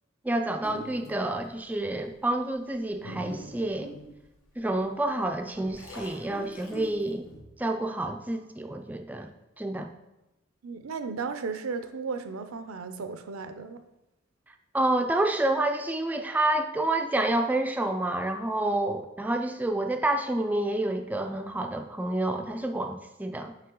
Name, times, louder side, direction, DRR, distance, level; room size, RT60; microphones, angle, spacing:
voice 1, 0.2-3.9 4.6-7.3 7.6-9.9 14.7-23.5, right 1 dB, 10° right, 5 dB, 0.3 m, -28 dB
sound 1, 0.6-1.3 2.0-2.1 2.7-4.8 5.3-7.4, equal, 85° left, 1.3 m, -43 dB
voice 2, 10.6-13.8, right 4 dB, 90° right, 9 dB, 0.5 m, -35 dB
5.6 x 5.3 x 3.8 m, 0.95 s
head